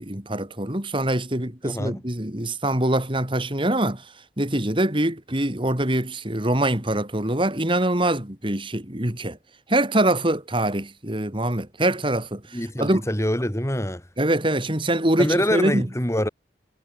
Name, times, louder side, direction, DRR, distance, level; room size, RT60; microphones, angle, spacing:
voice 1, 0.0-4.1 4.4-9.4 9.7-13.0 14.2-15.9, right 1 dB, 30° right, 3.5 m, -24 dB
voice 2, 1.6-2.0 12.5-14.0 15.2-16.3, left 1 dB, 15° left, 4.0 m, -25 dB
head